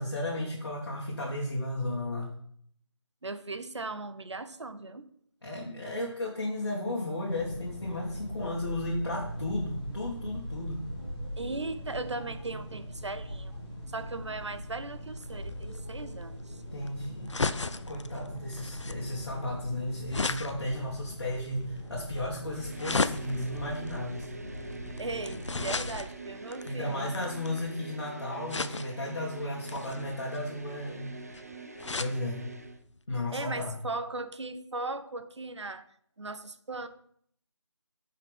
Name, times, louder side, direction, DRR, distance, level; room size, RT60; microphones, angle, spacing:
voice 1, 0.0-2.3 5.4-10.8 16.7-17.3 17.9-24.3 26.6-31.1 32.0-32.5 33.1-33.8, left 1 dB, 50° left, -4 dB, 1.9 m, -34 dB
voice 2, 3.2-5.1 11.4-13.5 13.8-16.6 25.0-27.1 33.3-35.8 36.2-36.9, right 3 dB, 70° right, 11 dB, 0.8 m, -38 dB
sound 1, 7.3-26.0, equal, 10° left, 1.9 m, -41 dB
sound 2, 15.2-27.8 28.5-29.1 29.6-32.2 32.7-32.8 33.0-33.1, left 3 dB, 75° left, 0.6 m, -36 dB
sound 3, 22.5-32.8, right 3 dB, 30° right, 0.5 m, -45 dB
9.6 x 5.7 x 3.6 m, 0.65 s
figure-of-eight pair, 170°, 16 cm